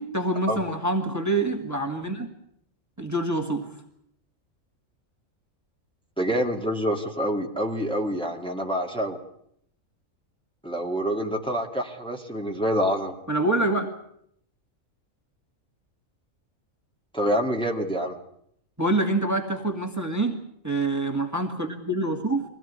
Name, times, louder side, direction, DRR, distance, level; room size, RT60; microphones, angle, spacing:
voice 1, 0.0-2.3 3.0-3.7 13.3-13.9 18.8-20.4 20.6-22.4, right 2 dB, 15° right, 4 dB, 2.1 m, -26 dB
voice 2, 6.2-9.2 10.6-13.1 17.1-18.2, equal, 5° left, 1 dB, 2.2 m, -26 dB
23.0 x 17.0 x 9.6 m, 0.71 s
omnidirectional pair, 1.4 m